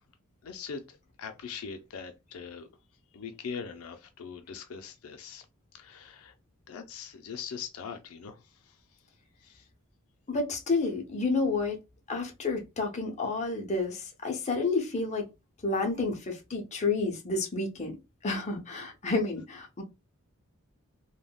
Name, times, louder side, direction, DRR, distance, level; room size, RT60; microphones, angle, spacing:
voice 1, 0.4-2.7 3.1-5.4 5.8-6.3 6.7-8.4 9.4-9.6, left 6 dB, 85° left, 0.5 m, -41 dB
voice 2, 10.3-11.8 12.1-15.3 15.6-18.0 18.2-19.8, left 3 dB, 30° left, 0.6 m, -30 dB
3.4 x 2.2 x 2.2 m
head